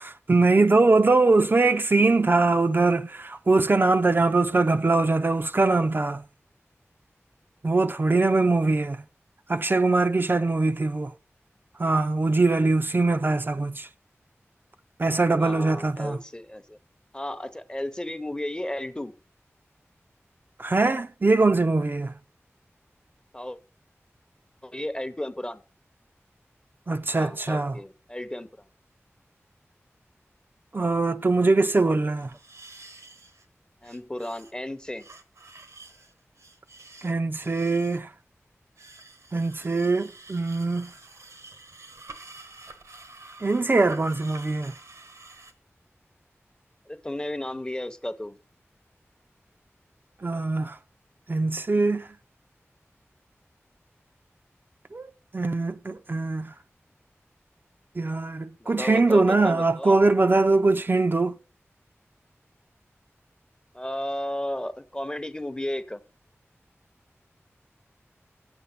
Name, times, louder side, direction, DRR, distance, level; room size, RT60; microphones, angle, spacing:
voice 1, 0.0-6.3 7.6-9.0 9.5-11.1 11.8-13.9 15.0-16.2 20.6-22.2 26.9-27.7 30.7-32.4 37.0-38.1 39.3-40.9 43.4-44.7 50.2-50.8 51.3-52.1 54.9-56.5 58.0-61.4, right 3 dB, 45° right, 0.5 m, -22 dB
voice 2, 15.4-16.8 17.1-19.1 23.3-23.6 24.6-25.6 27.1-28.5 33.8-35.1 46.9-48.4 58.6-60.0 63.7-66.0, left 1 dB, 15° left, 0.8 m, -34 dB
sound 1, 31.7-31.8 32.1-33.4 33.8-34.5 34.9-38.0 38.8-45.5, right 3 dB, 90° right, 1.1 m, -48 dB
8.3 x 7.0 x 5.6 m
wide cardioid pair, 65°, 5 cm